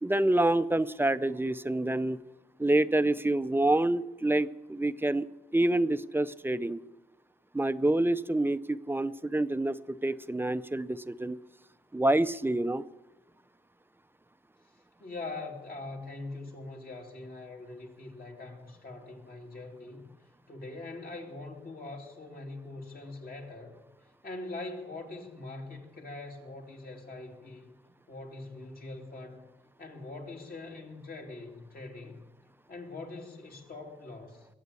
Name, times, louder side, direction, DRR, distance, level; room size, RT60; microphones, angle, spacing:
voice 1, 0.0-2.2 2.6-5.3 5.5-6.8 7.5-11.4 11.9-12.8, right 1 dB, 10° right, 13 dB, 0.5 m, -27 dB
voice 2, 15.0-20.1 20.5-23.8 24.2-27.7 28.1-29.5 29.8-32.2 32.7-34.5, left 2 dB, 55° left, 0 dB, 3.0 m, -42 dB
22.0 x 8.6 x 6.9 m, 1.1 s
wide cardioid pair, 130°, 18 cm